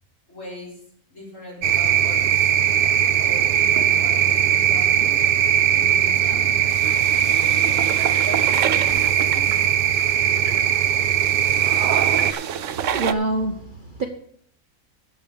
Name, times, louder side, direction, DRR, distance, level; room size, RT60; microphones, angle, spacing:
voice 1, 0.3-0.8 1.1-2.3 3.2-5.2 5.7-6.6 7.3-9.5, left 1 dB, 55° left, 5.2 m, -39 dB
sound 1, 1.6-12.3, right 9 dB, 80° right, 0.5 m, -19 dB
sound 2, 6.7-13.1, right 9 dB, 65° right, 0.9 m, -30 dB
voice 2, 12.9-14.1, right 2 dB, 40° right, 0.8 m, -25 dB
9.1 x 7.5 x 7.0 m
omnidirectional pair, 1.6 m